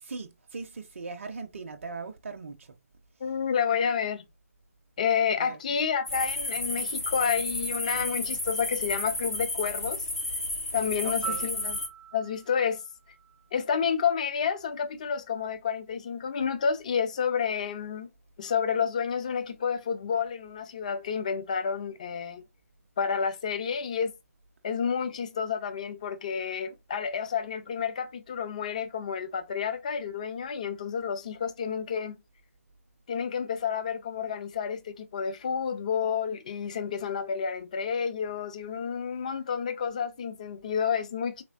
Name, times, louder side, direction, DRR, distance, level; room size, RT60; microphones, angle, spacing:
voice 1, 0.0-2.8 5.4-5.6 11.0-11.5, right 4 dB, 55° right, 0.5 m, -39 dB
voice 2, 3.2-4.2 5.0-10.1 10.7-11.8 12.1-12.8 13.5-18.1 18.4-22.4 23.0-24.1 24.6-32.2 33.1-41.4, left 7 dB, 30° left, 0.4 m, -30 dB
sound 1, 6.1-11.9, left 1 dB, 80° left, 1.7 m, -32 dB
Piano, 11.2-14.1 22.3-22.5, right 10 dB, 65° left, 2.1 m, -43 dB
3.5 x 3.0 x 2.4 m
figure-of-eight pair, 155°, 8 cm